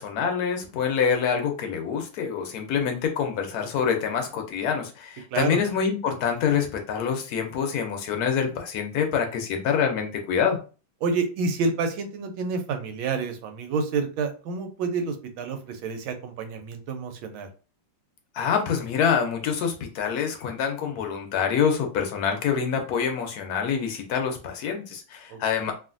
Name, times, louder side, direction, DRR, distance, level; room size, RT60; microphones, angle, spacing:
voice 1, 0.0-10.6 18.3-25.7, left 7 dB, 70° left, 4 dB, 0.9 m, -26 dB
voice 2, 11.0-17.5 25.3-25.7, right 4 dB, 90° right, 6 dB, 1.4 m, -29 dB
3.1 x 2.4 x 2.4 m, 0.35 s
omnidirectional pair, 2.2 m